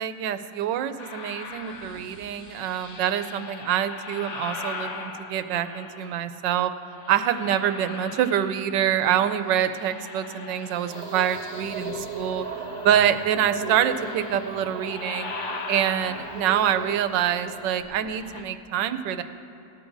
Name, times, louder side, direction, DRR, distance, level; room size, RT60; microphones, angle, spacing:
voice 1, 0.0-6.7 7.1-12.5 12.8-15.3 15.7-19.2, right 10 dB, 80° right, 10 dB, 1.3 m, -25 dB
sound 1, 1.0-6.3 6.8-9.1 9.3-18.4, left 4 dB, 55° left, 1.0 m, -40 dB
sound 2, 10.9-17.8, right 4 dB, 60° right, 1.2 m, -37 dB
18.5 x 13.0 x 2.6 m, 2.9 s
omnidirectional pair, 1.9 m